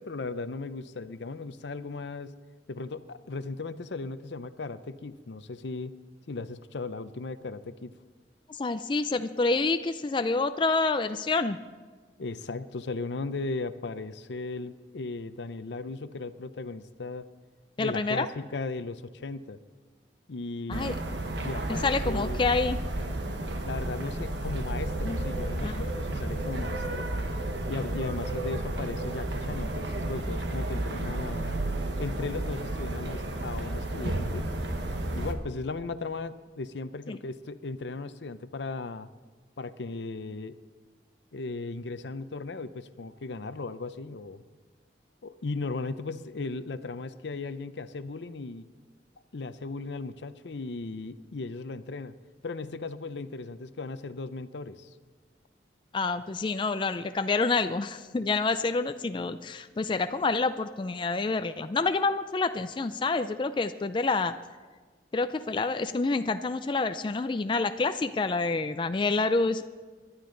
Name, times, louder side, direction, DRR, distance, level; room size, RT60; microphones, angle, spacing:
voice 1, 0.0-2.3 2.7-5.9 6.3-7.9 12.2-17.3 17.8-19.6 20.3-21.0 21.4-22.4 23.7-27.1 27.7-31.6 32.0-34.5 35.1-39.1 39.6-40.6 41.3-44.4 45.2-48.7 49.3-52.1 52.4-54.9, left 3 dB, 75° left, 12 dB, 0.6 m, -36 dB
voice 2, 8.5-11.6 17.8-18.3 20.7-20.9 21.8-22.8 25.0-25.2 25.6-25.8 37.1-37.2 55.9-64.3 65.1-69.6, left 3 dB, 25° left, 9 dB, 0.4 m, -28 dB
sound 1, 20.7-35.3, right 1 dB, 80° right, 1.2 m, -32 dB
21.0 x 11.5 x 3.9 m, 1.4 s
head